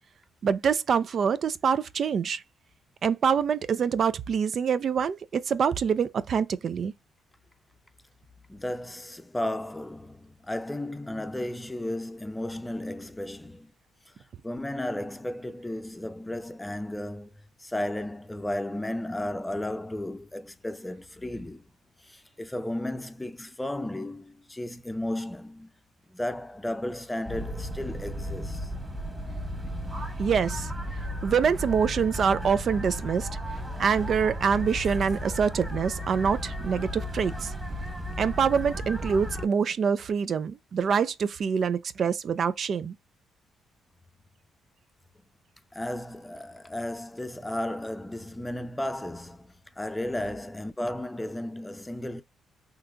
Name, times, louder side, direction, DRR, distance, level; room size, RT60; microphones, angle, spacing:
voice 1, 0.4-2.4 3.0-6.9 30.2-30.7 31.2-33.3 33.8-37.5 38.2-42.9, right 6 dB, 55° right, 0.3 m, -25 dB
voice 2, 8.5-13.7 14.4-21.6 22.0-25.7 26.1-28.7 45.7-52.2, left 1 dB, 10° left, 0.6 m, -34 dB
sound 1, 27.3-39.5, equal, 15° right, 1.3 m, -34 dB
3.7 x 2.8 x 2.2 m
cardioid pair, 90°, 0 cm